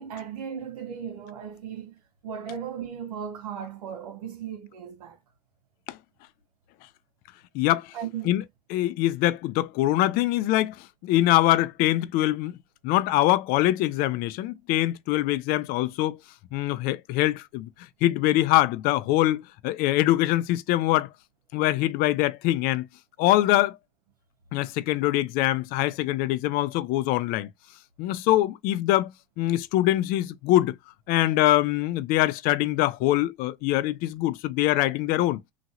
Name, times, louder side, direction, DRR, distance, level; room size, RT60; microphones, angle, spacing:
voice 1, 0.0-5.2 7.9-8.3, right 8 dB, 90° right, 1.1 m, -36 dB
voice 2, 7.5-7.9 8.2-8.4 8.7-12.6 12.8-16.2 16.5-21.1 21.5-22.9 23.2-23.8 24.5-27.5 28.0-30.8 31.1-35.4, left 15 dB, 50° left, 0.5 m, -23 dB
2.9 x 2.8 x 2.5 m
supercardioid pair, 125°, 19 cm